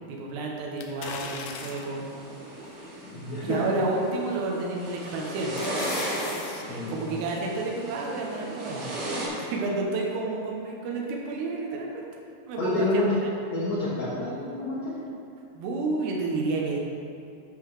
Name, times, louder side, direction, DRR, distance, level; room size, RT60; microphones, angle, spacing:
voice 1, 0.1-2.1 3.4-5.5 6.4-8.9 9.4-11.9 12.4-13.3 15.5-16.8, right 3 dB, 80° right, -2 dB, 3.2 m, -30 dB
sound 1, 0.8-2.0 2.6-2.7 4.3-4.7 5.1-6.6 7.0-7.1, left 5 dB, 90° left, 2.9 m, -38 dB
sound 2, 1.6-9.3, right 1 dB, 65° right, 4.0 m, -36 dB
voice 2, 3.0-3.6 6.7-7.2 12.6-13.1 13.5-15.0, left 2 dB, 55° left, -9 dB, 2.2 m, -29 dB
12.0 x 4.0 x 6.5 m, 2.6 s
omnidirectional pair, 4.7 m